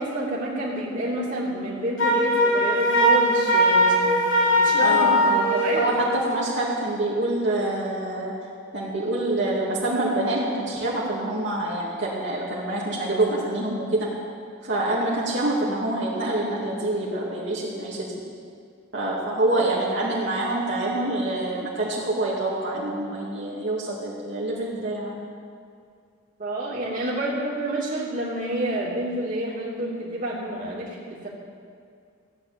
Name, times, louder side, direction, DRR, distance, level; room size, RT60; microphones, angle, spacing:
voice 1, 0.0-4.2 4.6-5.9 19.2-19.5 26.4-31.3, right 1 dB, 40° right, -5 dB, 2.9 m, -29 dB
Wind instrument woodwind instrument, 2.0-5.9, equal, 65° left, 3.2 m, -20 dB
voice 2, 4.7-5.5 5.8-8.3 8.7-14.1 14.6-18.1 18.9-25.2, right 2 dB, 60° right, -6 dB, 2.5 m, -26 dB
15.5 x 9.9 x 7.1 m, 2.2 s
head